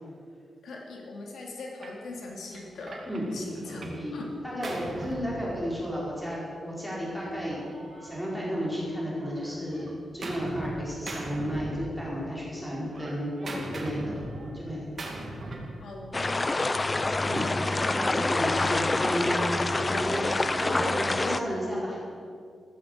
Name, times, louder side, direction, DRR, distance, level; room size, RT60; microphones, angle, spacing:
voice 1, 0.6-3.1 3.3-4.3 15.8-16.4, left 2 dB, 75° left, -1 dB, 2.6 m, -41 dB
Gunshot gunfire, 1.8-2.0 2.5-4.1 4.3-6.0 7.0-8.8 9.2-10.8 11.1-12.3 12.6-15.8, right 2 dB, 35° right, 2.4 m, -40 dB
voice 2, 3.6-4.2 4.4-7.7 8.0-14.1 14.4-14.8 17.2-22.0, equal, 5° left, -6 dB, 5.0 m, -33 dB
sound 1, 16.1-21.4, left 2 dB, 20° left, 0.5 m, -26 dB
14.5 x 14.0 x 6.6 m, 2.3 s
wide cardioid pair, 170°, 0 cm